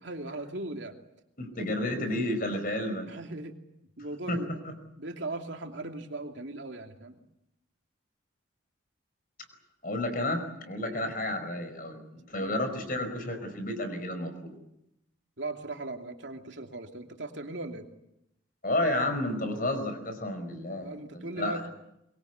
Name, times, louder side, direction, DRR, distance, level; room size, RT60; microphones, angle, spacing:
voice 1, 0.0-1.0 1.5-2.3 3.0-3.6 4.0-4.5 5.0-7.2 10.9-11.0 12.4-12.5 15.4-17.9 20.8-21.7, right 2 dB, 70° right, 3 dB, 2.8 m, -39 dB
voice 2, 1.4-3.1 4.3-4.4 4.6-4.7 9.8-14.5 18.6-21.6, left 1 dB, 45° left, 8 dB, 5.0 m, -31 dB
24.0 x 22.5 x 8.2 m, 0.84 s
head